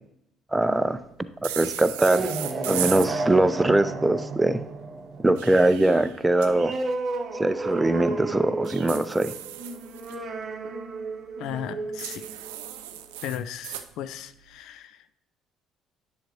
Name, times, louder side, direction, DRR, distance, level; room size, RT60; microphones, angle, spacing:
voice 1, 0.5-1.0 1.6-2.3 2.7-4.6 5.2-6.7 7.4-9.3, right 2 dB, 15° right, 12 dB, 0.5 m, -22 dB
sound 1, 1.4-3.1 5.1-6.5 8.6-10.2 12.0-13.9, right 11 dB, 70° right, 0.5 m, -35 dB
sound 2, 2.0-13.1, right 3 dB, 40° right, 0.9 m, -33 dB
voice 2, 11.4-12.3 13.2-15.1, left 10 dB, 60° left, 13 dB, 0.4 m, -36 dB
10.0 x 6.5 x 2.9 m, 0.76 s
figure-of-eight pair, 50°, 0 cm